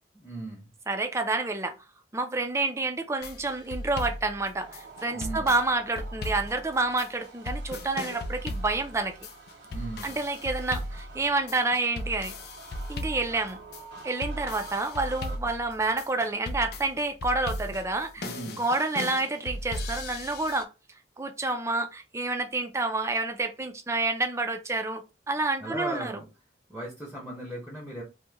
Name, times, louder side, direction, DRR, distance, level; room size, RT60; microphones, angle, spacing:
voice 1, 0.1-0.7 5.1-5.5 9.6-10.2 18.2-18.6 25.6-26.3 26.7-28.0, right 1 dB, 5° left, 0.8 m, -37 dB
voice 2, 0.9-1.7 2.1-9.1 10.0-12.3 12.9-13.6 14.0-18.3 18.6-20.7 21.2-26.2, right 3 dB, 15° right, 0.4 m, -29 dB
sound 1, 3.2-20.6, left 1 dB, 60° left, 0.4 m, -37 dB
sound 2, 4.5-15.4, right 4 dB, 70° right, 0.6 m, -48 dB
2.9 x 2.2 x 3.3 m
head